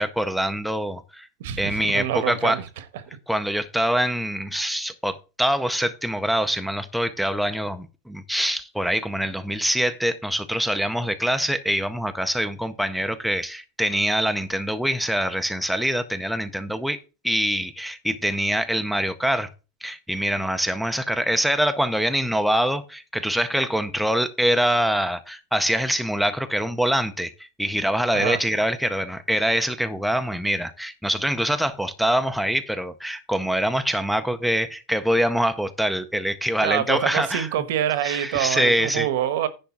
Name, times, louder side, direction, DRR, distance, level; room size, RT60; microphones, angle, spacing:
voice 1, 0.0-1.3 1.6-2.6 3.3-17.0 17.2-19.5 19.8-37.5 38.0-39.1, equal, ahead, 0.5 m, -24 dB
voice 2, 1.4-2.6 28.1-28.4 36.6-39.5, right 11 dB, 65° right, 1.1 m, -26 dB
10.0 x 3.4 x 7.0 m
supercardioid pair, 165°, 0 cm